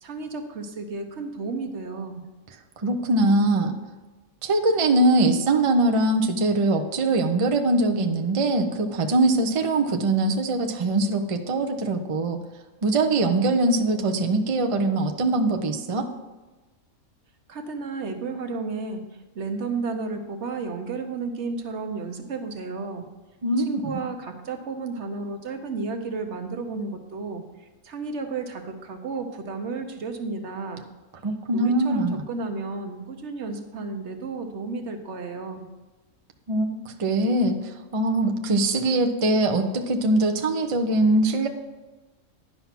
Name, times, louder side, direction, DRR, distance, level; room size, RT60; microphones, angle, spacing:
voice 1, 0.0-2.2 17.5-19.0 19.3-23.1 23.6-27.4 27.8-30.8 31.5-35.6, right 4 dB, 55° right, 6 dB, 1.1 m, -32 dB
voice 2, 2.8-3.8 4.4-12.4 12.8-16.1 23.4-24.0 31.2-32.2 36.5-41.5, right 2 dB, 40° right, 4 dB, 0.5 m, -22 dB
10.5 x 5.7 x 5.8 m, 1.2 s
omnidirectional pair, 1.5 m